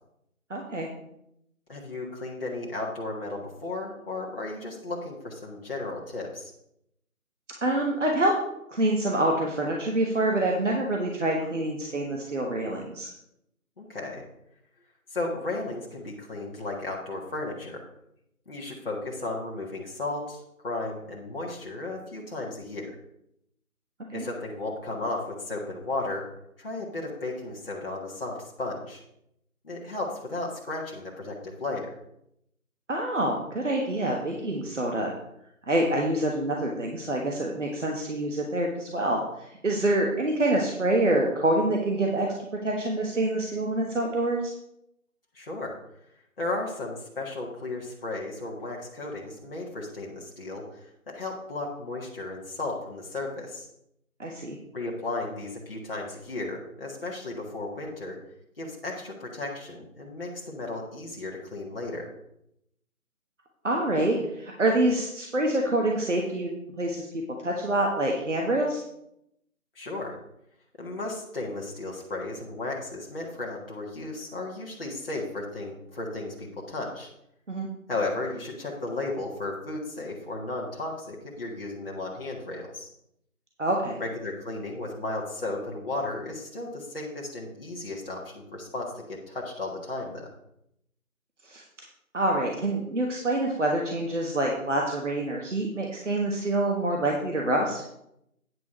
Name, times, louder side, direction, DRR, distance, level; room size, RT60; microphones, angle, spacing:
voice 1, 0.5-0.9 7.6-8.3 8.7-13.1 24.1-24.2 32.9-35.1 35.7-42.3 42.6-44.4 54.2-54.6 63.6-68.8 77.5-77.7 83.6-84.0 91.4-91.6 92.1-97.8, right 1 dB, 55° right, 0 dB, 1.5 m, -26 dB
voice 2, 1.7-6.5 13.8-14.2 15.1-17.8 18.5-22.9 24.1-26.2 26.6-29.0 29.6-31.9 45.3-45.7 46.4-53.7 54.7-58.2 58.6-62.1 69.7-70.2 70.8-77.1 77.9-82.9 84.0-90.3, left 2 dB, 40° left, -3 dB, 1.6 m, -34 dB
9.5 x 5.0 x 6.1 m, 0.79 s
figure-of-eight pair, 160°, 44 cm